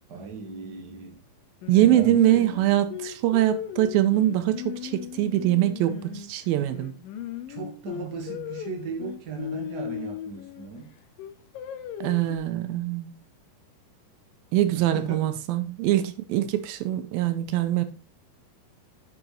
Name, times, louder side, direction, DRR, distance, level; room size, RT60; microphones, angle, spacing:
voice 1, 0.1-1.2 1.7-2.5 7.5-10.9 14.7-15.3, right 4 dB, 35° right, 1.9 m, -37 dB
Singing, 1.6-6.3 6.7-10.7 11.2-12.4, left 10 dB, 80° left, 2.4 m, -37 dB
voice 2, 1.7-6.9 12.0-13.1 14.5-17.9, right 13 dB, 85° right, 2.5 m, -23 dB
8.6 x 5.8 x 4.0 m
omnidirectional pair, 4.2 m